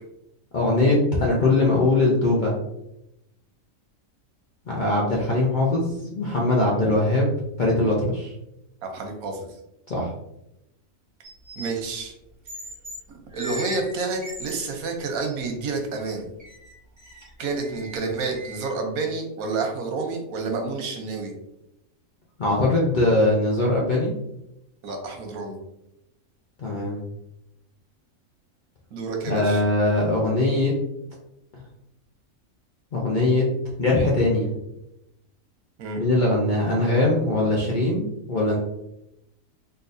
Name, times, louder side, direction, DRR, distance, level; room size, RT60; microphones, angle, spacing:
voice 1, 0.5-2.5 4.7-7.3 7.6-8.3 9.9-10.1 22.4-24.1 26.6-27.0 29.3-30.7 32.9-33.5 33.8-34.5 36.0-38.6, left 2 dB, 60° left, -4 dB, 0.5 m, -21 dB
voice 2, 8.8-9.5 11.6-12.1 13.3-16.3 17.4-21.3 24.8-25.6 28.9-29.6 35.8-36.0, right 3 dB, 85° right, 3 dB, 1.2 m, -29 dB
sound 1, 11.2-11.8 12.5-13.0 13.3-14.7 15.1-15.4 15.8-16.0 16.4-18.7, equal, 15° right, 1.1 m, -39 dB
3.8 x 2.6 x 2.5 m, 0.85 s
omnidirectional pair, 1.5 m